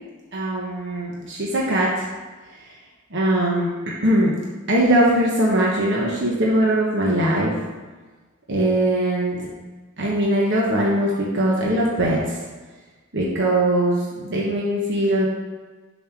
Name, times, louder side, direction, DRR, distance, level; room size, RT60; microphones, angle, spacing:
voice 1, 0.3-2.1 2.6-2.7 3.1-3.7 4.0-4.3 4.7-7.5 8.5-9.4 10.0-12.4 13.1-15.3, right 1 dB, 55° right, -4 dB, 1.1 m, -21 dB
7.0 x 4.2 x 5.9 m, 1.3 s
head